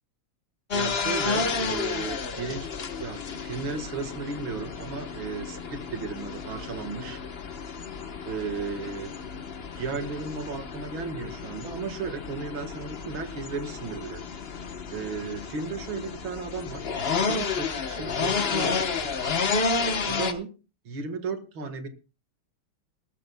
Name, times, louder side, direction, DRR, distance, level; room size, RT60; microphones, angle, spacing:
sound 1, 0.7-20.3, left 5 dB, 40° left, 0.9 m, -31 dB
voice 1, 0.7-7.2 8.3-9.1 9.8-14.2 14.9-19.1 20.1-20.5 20.8-21.9, right 4 dB, 65° right, 8 dB, 2.4 m, -35 dB
19.5 x 14.5 x 2.2 m, 0.33 s
omnidirectional pair, 2.4 m